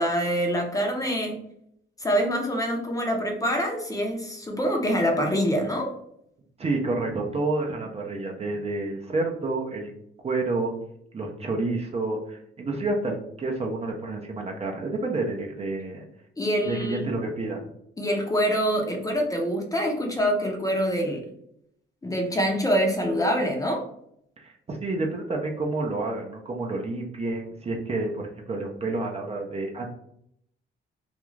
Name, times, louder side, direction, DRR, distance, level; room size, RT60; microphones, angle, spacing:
voice 1, 0.0-1.3 2.0-5.9 16.4-17.1 18.0-21.2 22.0-23.9, equal, 15° left, 1 dB, 0.6 m, -25 dB
voice 2, 6.6-9.9 10.2-10.7 11.1-16.0 16.6-17.7 24.4-29.8, right 2 dB, 30° right, 1 dB, 0.5 m, -29 dB
2.4 x 2.3 x 3.1 m, 0.72 s
cardioid pair, 90°, 20 cm